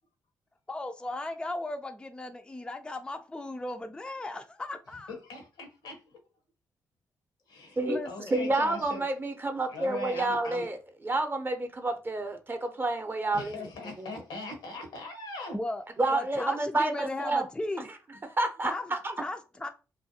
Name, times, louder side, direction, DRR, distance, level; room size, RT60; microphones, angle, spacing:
voice 1, 0.7-5.1 7.9-8.3 15.5-17.9 18.6-19.7, left 2 dB, 10° left, 0.3 m, -36 dB
voice 2, 5.1-6.0 7.5-7.8 8.0-9.0 9.7-10.7 13.3-15.6, left 2 dB, 85° left, 0.8 m, -40 dB
voice 3, 8.3-10.8 11.0-14.1 16.0-17.5 18.4-19.1, right 2 dB, 30° right, 0.6 m, -29 dB
2.4 x 2.2 x 2.6 m
supercardioid pair, 50°, 7 cm